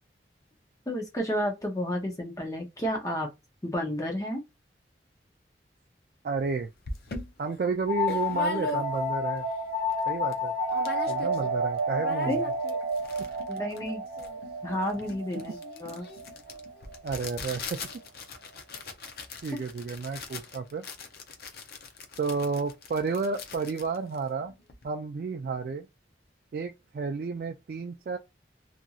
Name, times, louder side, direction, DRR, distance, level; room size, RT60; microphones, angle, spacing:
voice 1, 0.9-3.3 3.6-4.4 12.3-12.4 13.5-14.0 14.6-16.1 19.5-19.6, equal, 20° left, 0.7 m, -31 dB
voice 2, 6.2-6.7 7.4-9.5 10.1-10.5 11.1-12.4 17.0-17.8 19.4-20.8 22.2-24.5 24.8-25.9 26.5-28.2, right 4 dB, 55° right, 0.3 m, -31 dB
sound 1, 6.4-6.5 6.8-9.2 9.6-9.7 9.9-10.4 10.7-11.5 11.8-24.8, left 2 dB, 55° left, 0.6 m, -40 dB
sound 2, 7.9-17.2, left 1 dB, 75° right, 0.7 m, -31 dB
2.8 x 2.6 x 2.3 m
head